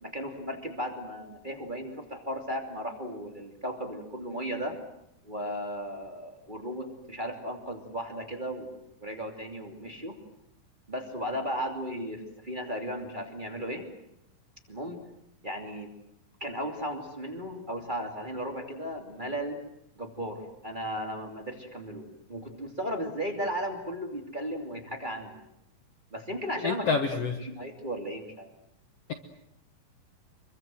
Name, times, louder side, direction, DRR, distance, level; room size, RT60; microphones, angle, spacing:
voice 1, 0.0-4.8 5.2-10.2 10.9-13.8 14.7-15.0 15.4-15.9 16.4-19.6 20.0-25.4 26.1-28.5, equal, 15° right, 2 dB, 2.7 m, -35 dB
voice 2, 26.6-27.4, left 5 dB, 60° left, 6 dB, 1.9 m, -27 dB
26.0 x 23.5 x 7.8 m, 0.83 s
omnidirectional pair, 4.0 m